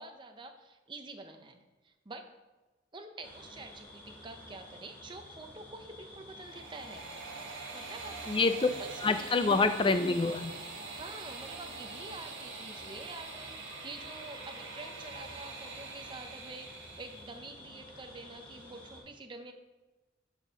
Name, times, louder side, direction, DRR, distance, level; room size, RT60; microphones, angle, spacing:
voice 1, 0.0-2.2 2.9-7.1 7.7-9.6 10.9-19.5, right 2 dB, 25° right, 5 dB, 0.6 m, -47 dB
sound 1, 3.2-19.0, left 1 dB, 10° left, 2.3 m, -51 dB
sound 2, 6.2-17.3, right 4 dB, 80° right, 1.3 m, -45 dB
voice 2, 8.3-8.7 9.0-10.5, left 3 dB, 25° left, 9 dB, 0.4 m, -26 dB
11.5 x 4.2 x 5.1 m, 1.2 s
head